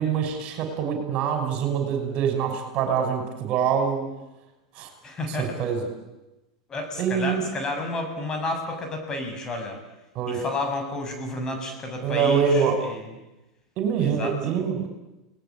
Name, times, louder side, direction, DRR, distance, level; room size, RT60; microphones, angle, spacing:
voice 1, 0.0-4.1 4.7-4.9 5.3-5.9 7.0-7.4 10.1-10.4 12.0-12.8 13.8-14.8, right 7 dB, 50° right, 6 dB, 6.1 m, -25 dB
voice 2, 5.0-5.5 6.7-9.8 10.3-13.1 14.0-14.4, left 2 dB, 25° left, 4 dB, 7.4 m, -31 dB
30.0 x 19.5 x 8.8 m, 1.0 s
hypercardioid pair, 95°, 3 cm